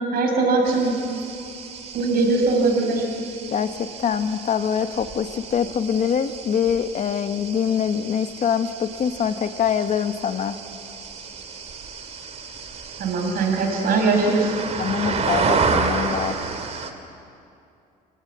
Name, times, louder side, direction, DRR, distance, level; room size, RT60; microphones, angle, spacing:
voice 1, 0.1-0.9 1.9-3.0 13.0-14.5, right 3 dB, 60° right, 2 dB, 5.4 m, -20 dB
sound 1, 0.6-16.9, right 5 dB, 40° right, 2.4 m, -31 dB
voice 2, 3.5-10.6 14.8-16.4, left 8 dB, 45° left, 10 dB, 1.2 m, -24 dB
27.0 x 18.0 x 8.7 m, 2.6 s
cardioid pair, 110°, 17 cm